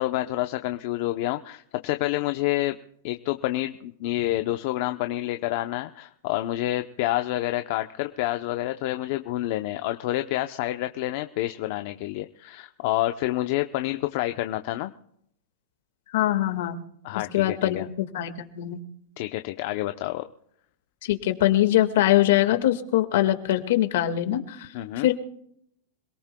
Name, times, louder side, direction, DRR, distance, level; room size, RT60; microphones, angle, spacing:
voice 1, 0.0-2.8 3.0-14.9 17.0-17.9 19.2-20.3 24.7-25.1, left 15 dB, 55° left, 8 dB, 0.7 m, -28 dB
voice 2, 16.1-16.8 17.3-18.8 21.0-24.7 25.0-25.1, left 13 dB, 70° left, 8 dB, 1.8 m, -23 dB
27.0 x 18.0 x 2.3 m, 0.72 s
supercardioid pair, 145°, 0 cm